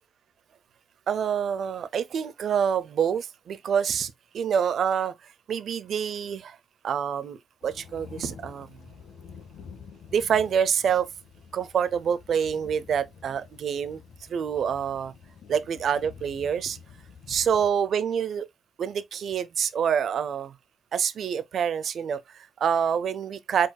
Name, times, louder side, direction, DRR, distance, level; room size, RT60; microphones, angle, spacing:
voice 1, 1.1-5.1 5.5-6.6 6.8-7.4 7.6-8.7 10.1-11.1 11.5-14.0 14.3-15.1 15.5-16.8 17.3-18.5 18.8-20.5 20.9-23.7, right 7 dB, 60° right, 0.6 m, -26 dB
sound 1, 7.6-17.7, left 6 dB, 65° left, 1.2 m, -48 dB
4.8 x 4.4 x 2.2 m
cardioid pair, 90°, 0 cm